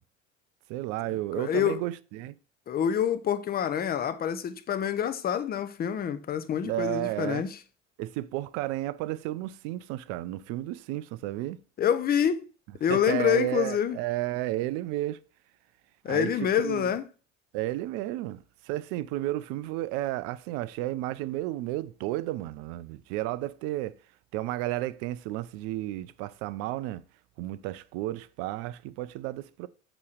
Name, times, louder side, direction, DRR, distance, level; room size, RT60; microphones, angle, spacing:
voice 1, 0.7-2.4 6.6-7.4 8.0-11.6 12.9-15.2 16.1-16.3 16.6-16.9 17.5-24.0 24.3-27.0 27.4-29.7, right 16 dB, 40° right, 0.4 m, -32 dB
voice 2, 1.3-1.8 2.7-7.6 11.8-12.5 12.8-14.0 16.0-17.0, left 9 dB, 25° left, 0.7 m, -27 dB
8.3 x 3.1 x 6.3 m
figure-of-eight pair, 70°, 40 cm